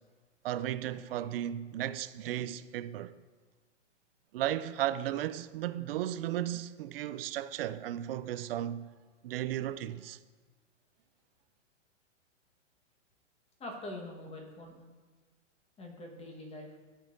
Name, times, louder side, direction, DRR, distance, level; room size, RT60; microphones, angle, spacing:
voice 1, 0.4-3.1 4.3-8.9 9.2-10.2, right 12 dB, 50° right, 0.4 m, -35 dB
voice 2, 13.6-14.7 15.8-16.7, left 1 dB, 15° left, 1.3 m, -44 dB
14.0 x 5.5 x 2.6 m
hypercardioid pair, 125°, 37 cm